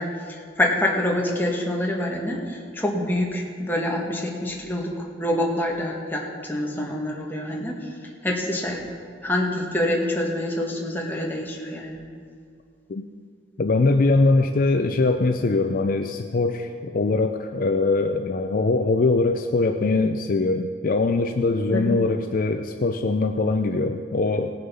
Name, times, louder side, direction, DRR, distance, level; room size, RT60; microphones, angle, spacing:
voice 1, 0.0-7.9 8.2-8.8 9.2-12.0 21.7-22.0, left 1 dB, 10° left, -2 dB, 1.4 m, -26 dB
voice 2, 13.6-24.5, left 3 dB, 50° left, 6 dB, 0.4 m, -22 dB
17.5 x 6.7 x 5.5 m, 2.2 s
head